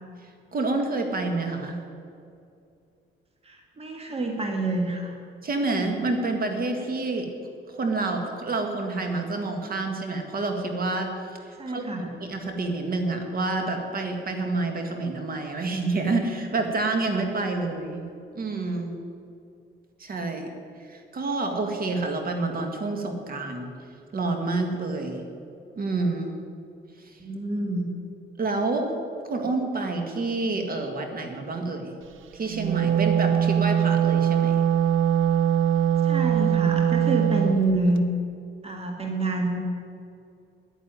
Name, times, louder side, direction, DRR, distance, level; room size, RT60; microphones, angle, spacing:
voice 1, 0.2-1.8 5.4-7.3 7.7-18.1 18.3-18.9 20.0-20.5 20.8-23.7 24.1-25.2 25.8-26.3 27.0-27.2 28.4-28.9 29.2-31.9 32.3-34.6, right 3 dB, 45° right, 4 dB, 1.9 m, -28 dB
voice 2, 3.4-5.2 11.6-12.1 27.2-27.9 36.0-38.0 38.6-39.6, right 2 dB, 30° right, 2 dB, 1.7 m, -27 dB
Wind instrument woodwind instrument, 32.5-37.6, right 9 dB, 85° right, 0.7 m, -22 dB
10.0 x 9.1 x 9.4 m, 2.5 s
cardioid pair, 90°, 20 cm